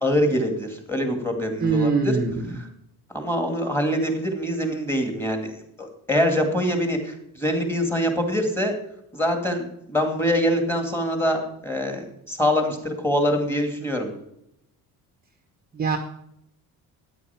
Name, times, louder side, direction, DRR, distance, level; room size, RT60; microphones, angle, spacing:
voice 1, 0.0-2.2 2.5-2.6 3.1-8.7 9.1-14.1, equal, 5° left, 4 dB, 2.2 m, -24 dB
voice 2, 1.6-2.5 15.7-16.0, right 4 dB, 25° right, 4 dB, 1.0 m, -22 dB
13.0 x 9.7 x 5.8 m, 0.78 s
cardioid pair, 170°, 39 cm